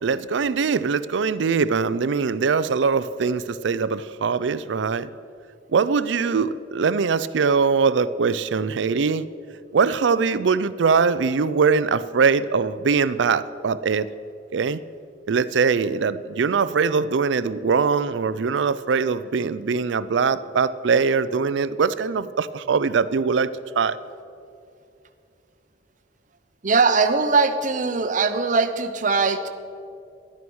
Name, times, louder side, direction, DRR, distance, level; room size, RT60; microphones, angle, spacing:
voice 1, 0.0-5.1 5.7-9.3 9.7-14.1 14.5-14.8 15.3-23.5 23.8-24.0, right 5 dB, 75° right, 16 dB, 0.4 m, -22 dB
voice 2, 26.6-29.5, right 4 dB, 45° right, 9 dB, 0.8 m, -20 dB
13.0 x 11.0 x 6.2 m, 2.5 s
head